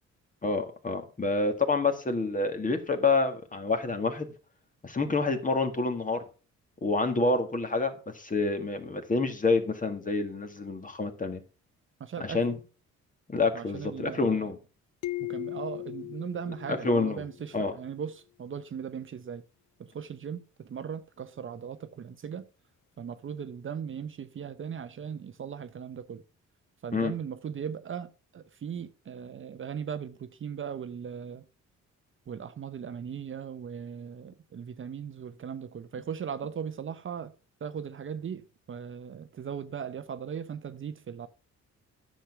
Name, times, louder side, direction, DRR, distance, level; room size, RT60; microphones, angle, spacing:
voice 1, 0.4-4.3 4.8-6.2 6.8-11.4 12.2-12.6 13.3-14.6 16.7-17.2 17.5-17.8 26.9-27.1, left 3 dB, 25° left, 1.9 m, -28 dB
voice 2, 12.0-12.4 13.5-14.4 15.2-19.4 19.8-22.4 23.0-26.2 26.8-28.1 28.3-31.4 32.3-37.3 37.6-41.3, right 7 dB, 40° right, 0.8 m, -38 dB
sound 1, 15.0-17.6, left 18 dB, 75° left, 0.7 m, -38 dB
9.9 x 6.5 x 5.8 m
cardioid pair, 90°, 30 cm